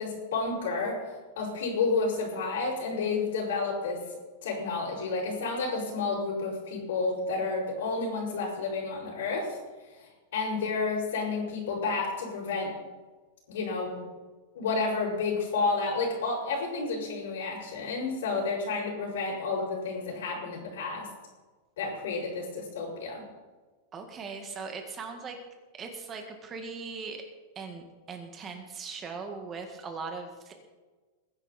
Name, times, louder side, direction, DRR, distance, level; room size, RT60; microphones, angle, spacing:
voice 1, 0.0-4.0 4.4-9.6 10.3-12.7 13.5-14.1 14.5-21.1 21.8-23.2, left 4 dB, 75° left, -6 dB, 6.2 m, -30 dB
voice 2, 23.9-25.4 25.7-27.2 27.6-30.5, right 4 dB, 15° right, 4 dB, 1.8 m, -39 dB
21.5 x 10.5 x 4.3 m, 1.3 s
supercardioid pair, 175°, 0 cm